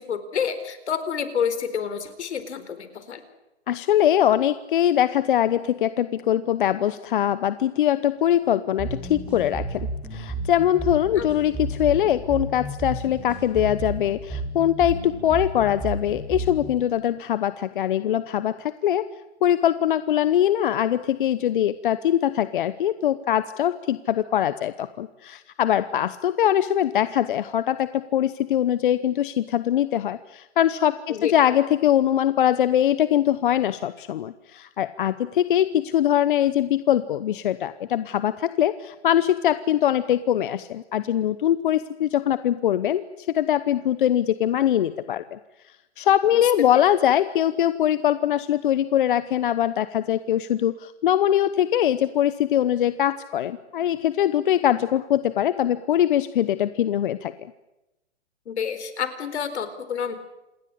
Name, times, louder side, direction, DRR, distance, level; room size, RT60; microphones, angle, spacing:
voice 1, 0.0-3.2 11.2-11.3 31.1-31.3 46.3-46.4 58.5-60.2, left 7 dB, 70° left, 11 dB, 4.3 m, -29 dB
voice 2, 3.7-19.1 19.4-45.4 46.0-57.5, left 11 dB, 45° left, 14 dB, 0.9 m, -22 dB
sound 1, 8.8-16.8, right 2 dB, 5° right, 6.7 m, -32 dB
27.5 x 20.0 x 8.6 m, 0.97 s
hypercardioid pair, 155°, 35 cm